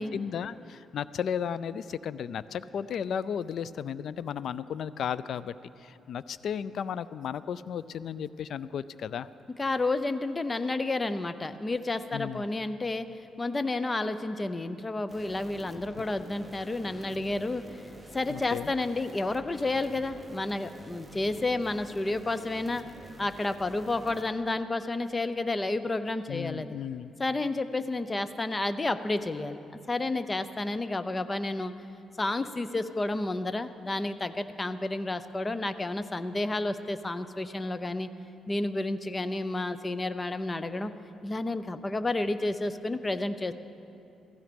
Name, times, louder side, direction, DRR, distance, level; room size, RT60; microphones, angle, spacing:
voice 1, 0.0-9.3 12.1-12.4 18.3-18.7 26.3-27.1, left 8 dB, 65° left, 16 dB, 0.4 m, -34 dB
voice 2, 9.6-13.1 13.4-17.6 18.1-22.8 23.2-26.8 27.2-29.6 29.9-31.7 32.2-38.1 38.5-40.9 41.2-43.5, left 2 dB, 20° left, 11 dB, 0.7 m, -31 dB
sound 1, 15.1-24.2, right 1 dB, 10° right, 1.3 m, -48 dB
15.5 x 15.5 x 5.2 m, 2.7 s
cardioid pair, 100°, 0 cm